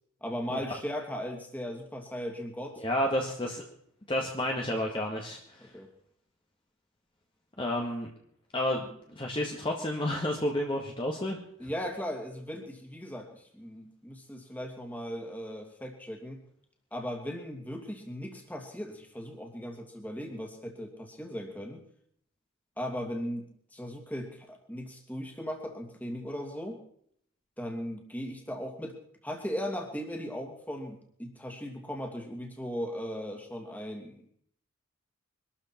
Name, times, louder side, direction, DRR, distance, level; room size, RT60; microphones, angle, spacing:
voice 1, 0.2-2.8 5.6-5.9 11.6-16.4 16.9-21.8 22.8-23.4 23.7-26.8 27.6-29.0 29.2-34.3, equal, 10° left, 2 dB, 2.6 m, -38 dB
voice 2, 2.8-3.6 4.1-5.6 7.6-8.1 8.5-8.9 9.2-11.7, left 1 dB, 25° left, 0 dB, 1.9 m, -31 dB
24.0 x 13.0 x 4.6 m, 0.67 s
head